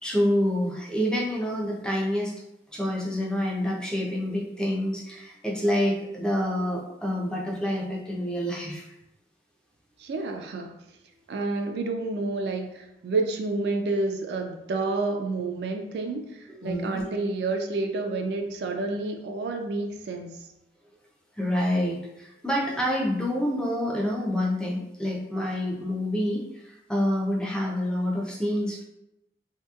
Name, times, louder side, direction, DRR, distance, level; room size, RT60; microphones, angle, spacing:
voice 1, 0.0-2.3 2.7-8.9 16.6-17.1 21.4-28.8, equal, 5° left, -2 dB, 0.4 m, -27 dB
voice 2, 10.0-10.8 11.3-20.4, right 3 dB, 70° right, 4 dB, 0.3 m, -29 dB
2.8 x 2.7 x 2.3 m, 0.88 s
head